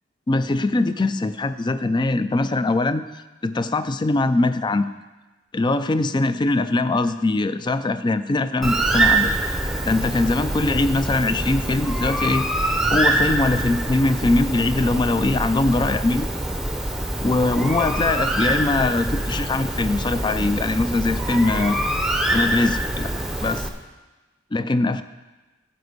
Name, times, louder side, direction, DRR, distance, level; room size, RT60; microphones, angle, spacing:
voice 1, 0.3-4.9 5.5-9.3 9.8-12.4 12.9-16.3 17.2-21.8 22.3-23.1 23.4-23.7 24.5-25.0, left 2 dB, 25° left, 12 dB, 0.4 m, -22 dB
Bird, 8.6-23.7, right 1 dB, ahead, 0.7 m, -24 dB
11.5 x 5.2 x 8.0 m, 1.1 s
head